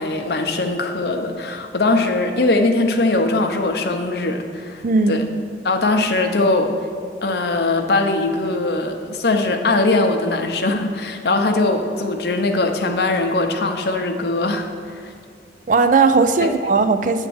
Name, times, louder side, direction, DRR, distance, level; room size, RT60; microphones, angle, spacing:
voice 1, 0.0-4.8 5.1-5.2 5.6-6.7 7.2-15.1 16.4-16.5, left 2 dB, 65° left, 4 dB, 0.7 m, -20 dB
voice 2, 4.8-5.2 15.7-17.3, right 4 dB, 45° right, 9 dB, 0.4 m, -17 dB
9.1 x 3.6 x 6.9 m, 2.3 s
head